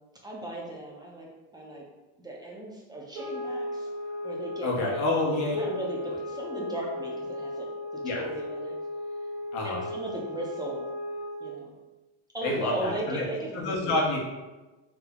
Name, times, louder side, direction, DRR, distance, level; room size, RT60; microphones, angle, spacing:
voice 1, 0.2-1.3 1.5-1.8 2.2-3.9 4.2-7.7 8.2-8.7 9.6-10.8 11.4-11.7 12.3-14.0, right 1 dB, 10° right, -3 dB, 0.5 m, -37 dB
sound 1, 3.1-11.5, left 1 dB, 70° right, 1.0 m, -36 dB
voice 2, 4.6-5.7 6.1-6.2 8.0-8.2 9.5-9.9 12.4-13.2 13.5-14.2, left 2 dB, 50° left, -1 dB, 1.0 m, -28 dB
3.4 x 2.0 x 3.5 m, 1.1 s
supercardioid pair, 110°, 35 cm